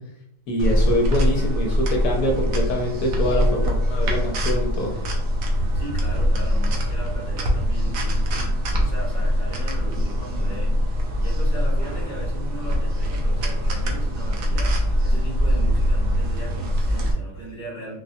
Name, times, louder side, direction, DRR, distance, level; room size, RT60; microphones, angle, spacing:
voice 1, 0.5-4.9, left 1 dB, 70° left, 0 dB, 1.1 m, -24 dB
sound 1, 0.6-17.1, equal, 80° right, 1.2 m, -23 dB
voice 2, 5.7-18.0, right 1 dB, 40° right, -9 dB, 0.8 m, -38 dB
4.2 x 2.2 x 2.6 m, 0.80 s
omnidirectional pair, 1.8 m